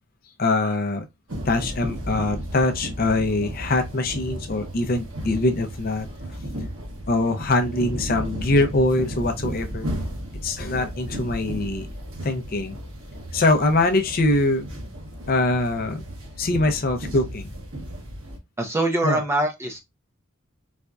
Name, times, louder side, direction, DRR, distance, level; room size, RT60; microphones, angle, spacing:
voice 1, 0.4-1.1 1.5-6.1 7.1-9.9 10.4-11.9 12.2-12.8 13.3-14.7 15.3-16.0 16.4-17.5 19.0-19.2, left 2 dB, 45° left, 0.5 m, -23 dB
sound 1, 1.3-18.4, equal, 70° right, 1.2 m, -34 dB
voice 2, 18.6-19.8, right 2 dB, 10° right, 0.5 m, -24 dB
4.1 x 2.4 x 2.3 m
head